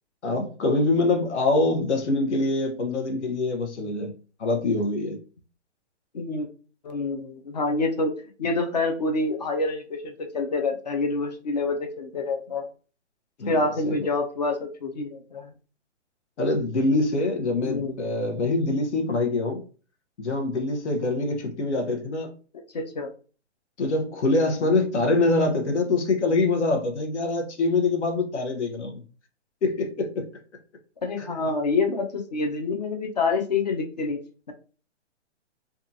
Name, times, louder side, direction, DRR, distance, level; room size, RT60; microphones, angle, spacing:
voice 1, 0.2-4.1 4.4-5.2 13.4-14.1 16.4-19.6 20.2-22.3 23.8-29.0 29.6-30.3 31.2-31.3, left 2 dB, 70° left, 0.9 m, -24 dB
voice 2, 6.1-6.5 6.8-8.1 8.4-12.7 13.4-15.5 17.6-18.0 22.7-23.1 24.4-24.8 31.0-34.2, left 3 dB, 35° left, 0.4 m, -27 dB
2.7 x 2.4 x 2.6 m
hypercardioid pair, 165°, 36 cm